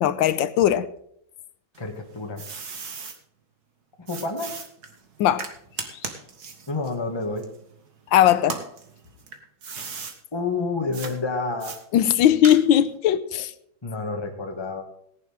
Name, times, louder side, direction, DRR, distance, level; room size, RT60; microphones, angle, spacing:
voice 1, 0.0-0.9 5.2-5.5 8.1-8.6 11.9-13.5, left 11 dB, 75° left, 1.5 m, -19 dB
sound 1, 1.7-3.2 4.1-8.0 8.4-10.2 10.9-11.1 11.6-12.9, right 5 dB, 55° right, 2.1 m, -37 dB
voice 2, 1.8-2.4 4.1-4.5 6.7-7.4 10.3-11.7 13.8-14.8, left 3 dB, 15° left, 1.7 m, -29 dB
18.5 x 10.5 x 3.6 m
omnidirectional pair, 2.2 m